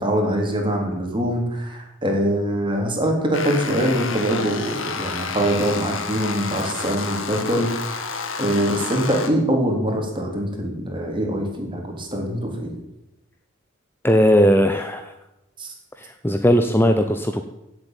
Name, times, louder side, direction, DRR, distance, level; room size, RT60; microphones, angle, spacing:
voice 1, 0.0-8.0 8.4-12.7 15.6-15.7, equal, 25° right, 1 dB, 3.8 m, -23 dB
sound 1, 3.3-9.3, left 4 dB, 70° left, 2.0 m, -30 dB
voice 2, 14.0-15.1 16.0-17.4, equal, 10° left, 6 dB, 0.8 m, -18 dB
16.0 x 8.1 x 9.3 m, 0.94 s
head